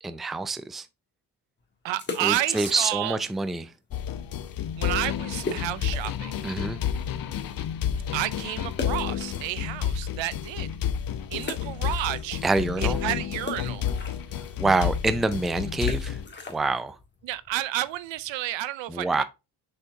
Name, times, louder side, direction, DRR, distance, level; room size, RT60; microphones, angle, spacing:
voice 1, 0.0-0.9 2.2-3.7 6.4-6.8 12.4-13.0 14.6-16.2 16.5-17.0 18.9-19.2, right 3 dB, ahead, 0.4 m, -26 dB
voice 2, 1.8-3.2 4.8-6.3 8.1-10.7 11.3-12.4 12.8-13.8 17.2-19.2, right 14 dB, 75° right, 0.8 m, -31 dB
sound 1, 1.9-3.2 3.5-3.6 4.2-4.3 4.6-4.7 5.4-6.3 6.8-6.9 8.7-10.0 10.5-10.6 11.4-12.6 12.8-18.3, left 3 dB, 25° left, 1.7 m, -39 dB
sound 2, 3.9-16.3, left 9 dB, 50° left, 0.8 m, -30 dB
6.7 x 4.3 x 3.5 m
cardioid pair, 120°, 45 cm